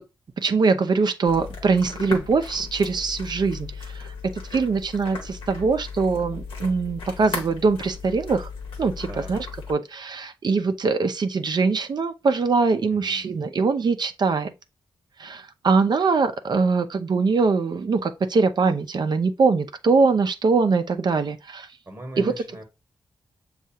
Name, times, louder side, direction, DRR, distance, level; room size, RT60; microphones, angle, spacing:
voice 1, 0.4-8.5 8.8-14.5 15.2-21.7 22.2-22.3, right 4 dB, 55° right, 0.5 m, -22 dB
sound 1, 1.3-9.7, left 4 dB, 85° left, 1.0 m, -36 dB
voice 2, 9.1-9.4 12.9-13.3 21.9-22.6, right 1 dB, 30° right, 1.1 m, -40 dB
6.3 x 2.4 x 2.7 m
supercardioid pair, 40°, 9 cm